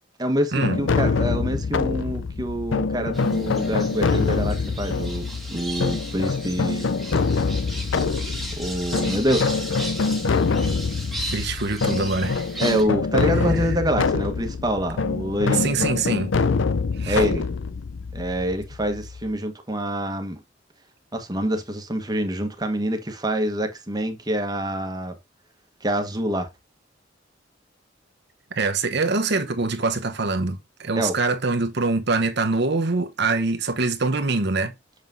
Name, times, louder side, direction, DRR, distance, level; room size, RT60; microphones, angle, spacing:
voice 1, 0.2-6.9 8.6-9.6 12.6-15.7 17.1-17.5 18.1-20.4 21.1-25.2 25.8-26.5 30.9-31.1, equal, 20° right, 1.3 m, -26 dB
sound 1, 0.6-19.3, left 4 dB, 75° left, 0.5 m, -25 dB
sound 2, 3.1-12.8, right 1 dB, ahead, 1.7 m, -36 dB
voice 2, 11.3-12.5 13.5-13.6 15.5-16.3 16.9-17.3 28.5-34.7, right 3 dB, 60° right, 1.0 m, -24 dB
6.5 x 5.6 x 2.7 m
head